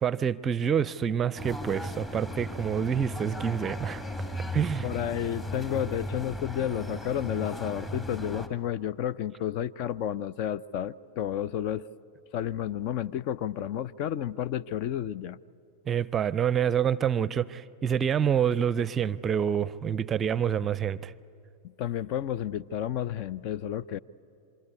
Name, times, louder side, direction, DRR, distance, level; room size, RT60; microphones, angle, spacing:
voice 1, 0.0-4.0 4.5-4.9 15.9-21.1, right 8 dB, 25° right, 0.6 m, -27 dB
sound 1, 1.4-8.5, left 1 dB, 15° left, 1.9 m, -36 dB
voice 2, 4.8-11.9 12.3-15.4 21.6-24.0, left 10 dB, 45° left, 0.5 m, -31 dB
27.0 x 23.0 x 9.6 m
figure-of-eight pair, 90°, 0 cm